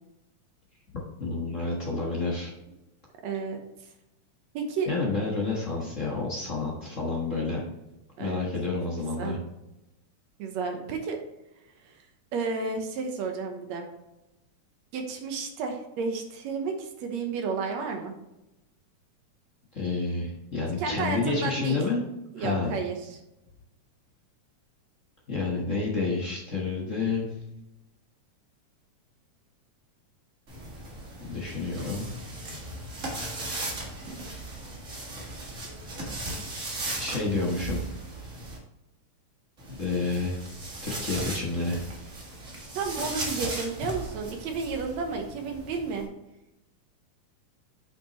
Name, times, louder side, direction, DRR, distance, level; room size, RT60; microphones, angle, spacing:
voice 1, 1.2-2.5 4.9-7.6 8.2-9.4 19.7-22.0 22.4-22.7 25.3-27.3 31.3-32.1 37.0-37.8 39.8-40.4 40.8-41.8, left 3 dB, 45° left, -3 dB, 1.0 m, -29 dB
voice 2, 3.2-3.6 4.5-4.9 8.2-8.5 9.2-9.4 10.4-11.2 11.8-12.0 12.3-13.9 14.9-18.1 20.8-21.8 22.3-23.2 42.7-46.1, right 4 dB, 70° right, 3 dB, 2.1 m, -32 dB
sound 1, 30.5-38.6 39.6-46.1, right 2 dB, 30° right, 1.5 m, -37 dB
8.5 x 5.9 x 3.1 m, 0.93 s
omnidirectional pair, 3.5 m